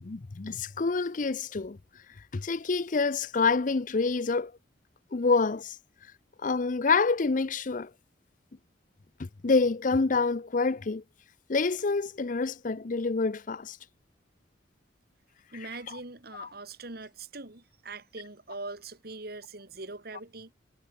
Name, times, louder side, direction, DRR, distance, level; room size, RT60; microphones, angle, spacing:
voice 1, 0.0-1.8 2.3-4.5 5.1-5.8 6.4-7.9 9.2-11.0 11.5-13.8 15.9-16.0 16.3-16.5, left 4 dB, 45° left, 0.6 m, -27 dB
voice 2, 15.5-20.5, right 3 dB, 55° right, 2.6 m, -42 dB
head